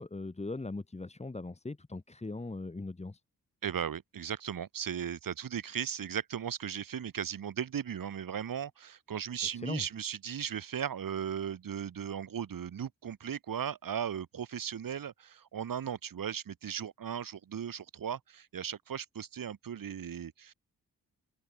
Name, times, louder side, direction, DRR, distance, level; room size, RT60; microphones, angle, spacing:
voice 1, 0.0-3.2 9.5-9.8, left 2 dB, 20° left, 1.5 m, -39 dB
voice 2, 3.6-20.5, right 8 dB, 70° right, 3.1 m, -37 dB
cardioid pair, 60°, 35 cm